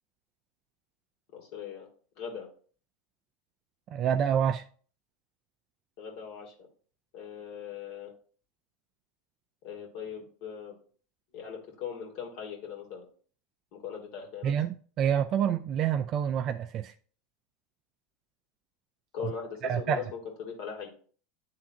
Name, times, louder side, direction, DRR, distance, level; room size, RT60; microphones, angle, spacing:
voice 1, 1.3-1.9 2.2-2.5 6.0-6.5 7.1-8.1 9.6-10.7 11.3-13.1 13.7-14.5 19.1-20.9, left 7 dB, 65° left, 2.2 m, -40 dB
voice 2, 3.9-4.6 14.4-16.9 19.6-20.0, right 8 dB, 45° right, 0.4 m, -27 dB
10.0 x 3.5 x 2.8 m
hypercardioid pair, 105°, 0 cm